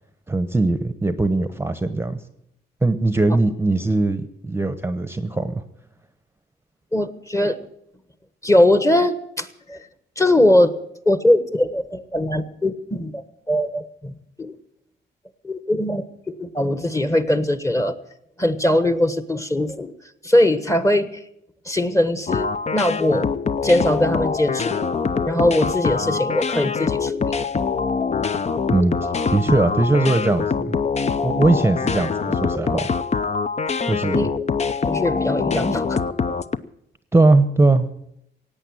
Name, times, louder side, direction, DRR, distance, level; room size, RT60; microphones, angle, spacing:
voice 1, 0.3-2.2 2.8-5.6 28.7-28.9 29.3-30.8 31.2-32.9 33.9-34.3 37.1-37.9, right 2 dB, 10° right, 11 dB, 1.0 m, -20 dB
voice 2, 6.9-7.6 8.4-9.8 10.2-10.7 11.0-14.5 15.4-18.0 18.4-19.9 20.2-21.2 21.6-23.3 23.6-24.9 25.3-27.3 34.1-34.3 34.9-36.0 36.3-36.4, left 1 dB, 15° left, 12 dB, 1.3 m, -21 dB
sound 1, 22.3-36.6, left 5 dB, 35° left, 0.7 m, -24 dB
17.0 x 8.9 x 8.8 m, 0.77 s
cardioid pair, 90°, 20 cm